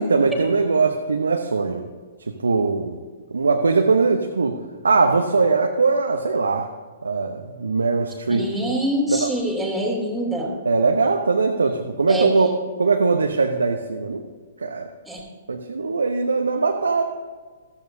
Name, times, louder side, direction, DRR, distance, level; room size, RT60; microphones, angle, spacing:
voice 1, 0.0-1.8 2.3-3.0 3.3-4.6 4.8-6.7 7.0-8.5 9.1-9.3 10.6-12.5 12.8-14.2 14.6-14.9 15.5-17.0, right 4 dB, 75° right, 3 dB, 0.8 m, -21 dB
voice 2, 8.3-10.6 12.1-12.3 15.1-15.2, equal, ahead, -3 dB, 2.8 m, -25 dB
14.0 x 13.5 x 2.7 m, 1.4 s
figure-of-eight pair, 115°, 0 cm